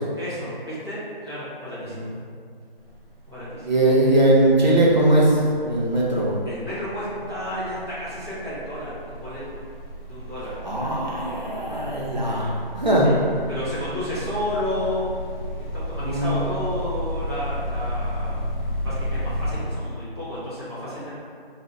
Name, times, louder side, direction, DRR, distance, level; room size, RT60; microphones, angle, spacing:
voice 1, 0.2-2.1 3.2-3.8 6.4-9.6 10.1-10.5 13.0-13.2 13.5-15.0 15.7-18.4 18.8-21.1, left 1 dB, 25° right, -13 dB, 1.1 m, -32 dB
sound 1, 2.8-3.1 3.4-19.6, equal, ahead, 1.4 m, -33 dB
voice 2, 3.6-6.4 10.6-13.1 16.0-16.4, right 1 dB, 45° right, -6 dB, 0.9 m, -20 dB
4.1 x 2.6 x 3.2 m, 2.2 s
figure-of-eight pair, 175°, 30 cm